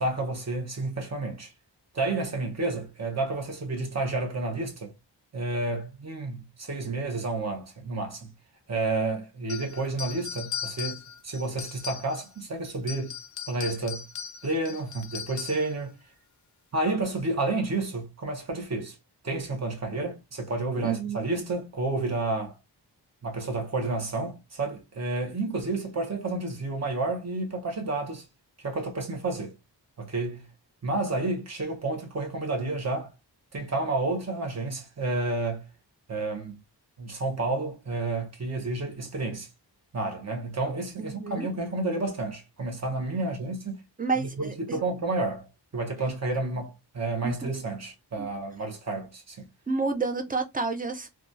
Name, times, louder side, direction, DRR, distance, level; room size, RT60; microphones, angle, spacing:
voice 1, 0.0-1.5 1.9-4.9 5.3-8.3 8.7-13.1 13.5-14.0 14.4-16.0 16.7-19.0 19.2-22.6 23.2-28.2 28.6-29.5 30.0-30.4 30.8-33.1 33.5-35.7 36.1-36.6 37.0-39.5 39.9-43.8 44.2-45.5 45.7-49.5, right 2 dB, 40° right, 0.8 m, -30 dB
sound 1, 9.5-12.4 12.8-15.7, left 8 dB, 45° left, 0.4 m, -38 dB
voice 2, 20.8-21.3 41.0-41.5 44.0-44.8 47.2-47.3 48.2-48.3 49.7-51.1, right 4 dB, 20° right, 0.4 m, -30 dB
2.9 x 2.2 x 2.5 m
wide cardioid pair, 130°, 43 cm